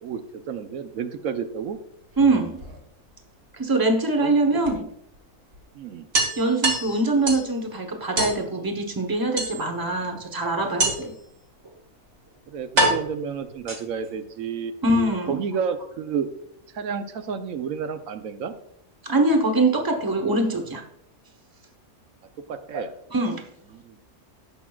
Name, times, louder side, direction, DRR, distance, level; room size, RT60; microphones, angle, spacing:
voice 1, 0.0-1.8 4.2-4.3 4.7-4.8 5.7-6.1 12.5-14.7 15.3-16.3 16.7-18.5 22.5-22.9 23.7-24.0, right 6 dB, 90° right, 9 dB, 1.2 m, -31 dB
sound 1, 2.0-3.2 4.6-4.7 5.1-5.2 5.5-5.6 6.1-7.5 8.2-8.4 9.4-9.9 10.8-11.2 12.0-12.1 12.8-14.1, right 2 dB, 60° right, 2.0 m, -25 dB
voice 2, 2.2-2.6 3.6-4.9 6.4-11.1 14.8-15.4 19.0-20.8 22.7-22.8 23.1-23.5, right 2 dB, 20° right, 4 dB, 1.0 m, -23 dB
17.0 x 6.0 x 2.4 m, 0.74 s
omnidirectional pair, 1.4 m